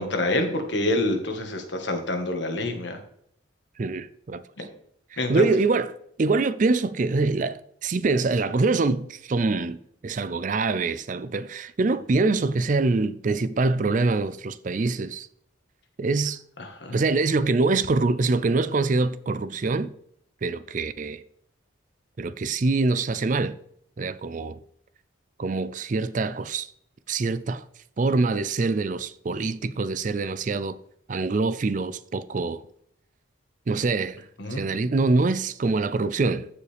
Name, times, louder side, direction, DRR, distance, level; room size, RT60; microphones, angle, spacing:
voice 1, 0.0-3.0 4.6-4.7 5.2-5.5 16.6-17.0 34.4-34.6, left 1 dB, 60° left, 1.6 m, -27 dB
voice 2, 3.8-4.7 5.1-15.3 16.0-16.4 16.9-19.9 20.4-21.2 22.2-23.6 24.0-24.6 25.4-26.7 27.1-27.6 28.0-30.8 31.1-32.6 33.7-34.2 34.5-36.5, right 3 dB, 40° right, 0.4 m, -24 dB
14.5 x 5.0 x 3.4 m
head